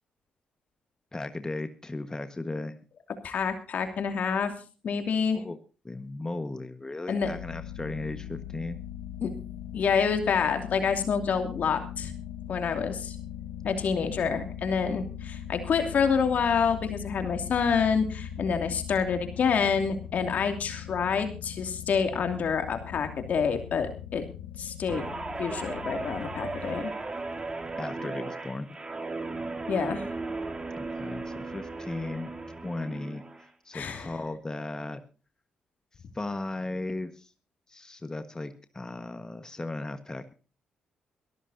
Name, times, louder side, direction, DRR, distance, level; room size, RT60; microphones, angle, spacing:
voice 1, 1.1-2.8 5.3-5.6 5.8-8.8 27.8-28.8 30.8-32.4 32.6-35.0 36.1-37.3 37.7-40.3, left 2 dB, 25° left, 9 dB, 1.5 m, -36 dB
voice 2, 3.2-4.5 4.8-5.4 7.1-7.3 9.2-9.3 9.7-12.1 12.5-13.1 13.6-24.2 24.6-25.0 25.4-26.9 29.7-30.0 33.7-34.1, left 6 dB, 60° left, 6 dB, 2.7 m, -27 dB
sound 1, 7.2-26.8, left 10 dB, 85° left, 1.2 m, -40 dB
Guitar, 24.9-33.5 33.9-34.2, right 3 dB, 30° right, 3.1 m, -36 dB
23.0 x 13.5 x 2.8 m, 0.36 s
hypercardioid pair, 50°, 3 cm